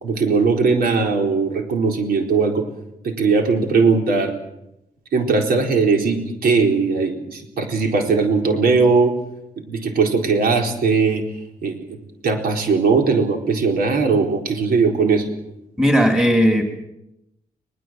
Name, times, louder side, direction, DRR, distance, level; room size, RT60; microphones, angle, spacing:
voice 1, 0.0-2.6 3.0-4.3 5.1-9.1 9.7-11.3 11.6-11.8 12.2-15.3, right 4 dB, 80° right, 2 dB, 4.3 m, -19 dB
voice 2, 15.8-16.6, equal, 5° right, 3 dB, 3.2 m, -16 dB
22.0 x 21.0 x 7.7 m, 0.86 s
wide cardioid pair, 170°, 15 cm